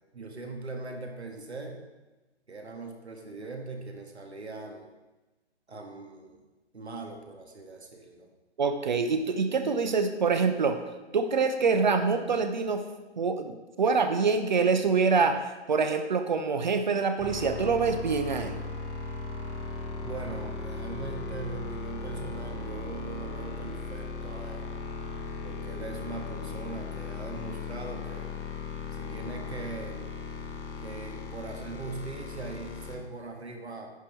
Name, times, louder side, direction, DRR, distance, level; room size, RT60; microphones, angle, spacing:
voice 1, 0.1-1.8 2.5-4.9 5.7-6.4 6.7-8.3 20.0-24.7 25.4-28.3 28.9-30.0 30.8-33.9, right 3 dB, 70° right, 3 dB, 1.7 m, -40 dB
voice 2, 8.6-10.8 11.1-12.8 13.2-18.6, right 5 dB, 40° right, 8 dB, 0.7 m, -25 dB
sound 1, 17.2-33.0, left 4 dB, 25° left, 1.1 m, -37 dB
10.5 x 6.0 x 4.5 m, 1.1 s
figure-of-eight pair, 135°, 35 cm